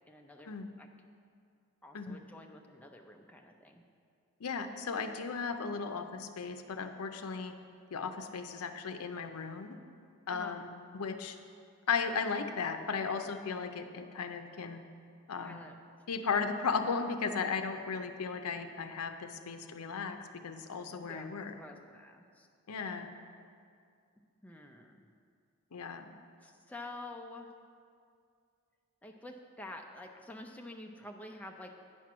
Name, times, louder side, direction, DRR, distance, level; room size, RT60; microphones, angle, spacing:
voice 1, 0.1-0.9 1.8-3.8 10.3-10.6 15.4-15.8 21.0-22.5 24.4-25.1 26.4-27.5 29.0-31.7, left 1 dB, 5° left, 2 dB, 0.4 m, -48 dB
voice 2, 4.4-7.5 7.9-9.8 10.3-10.7 10.9-11.4 11.9-14.8 15.3-15.6 16.1-20.2 20.4-21.5 22.7-23.1 25.7-26.1, left 5 dB, 85° left, 7 dB, 0.6 m, -36 dB
9.2 x 4.5 x 6.0 m, 2.3 s
head